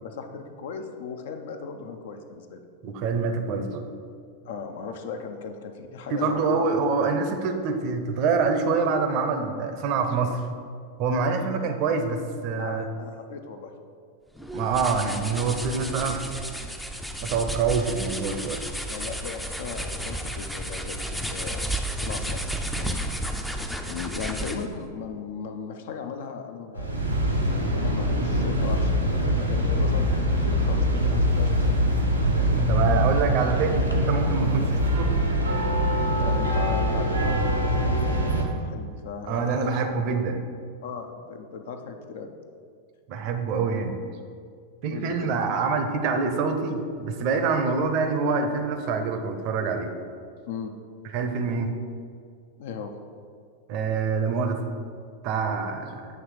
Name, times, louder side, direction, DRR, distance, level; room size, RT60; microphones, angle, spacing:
voice 1, 0.0-2.6 4.4-6.7 12.6-13.7 18.9-23.0 23.9-27.0 27.7-31.8 34.5-34.6 36.0-40.0 40.8-42.3 44.9-45.4 50.5-50.7 52.6-53.0, left 5 dB, 55° left, 6 dB, 0.5 m, -37 dB
voice 2, 2.8-3.8 6.1-10.4 11.0-12.9 14.5-16.2 17.2-18.6 32.7-35.1 39.3-40.4 43.1-44.0 44.8-49.9 51.1-51.7 53.7-54.6 55.2-56.1, right 4 dB, 45° right, 6 dB, 0.6 m, -26 dB
sound 1, 14.3-24.8, right 1 dB, 5° left, 0.4 m, -32 dB
sound 2, 26.7-38.5, equal, 85° right, 0.8 m, -23 dB
7.9 x 3.1 x 4.8 m, 2.2 s
figure-of-eight pair, 90°, 0 cm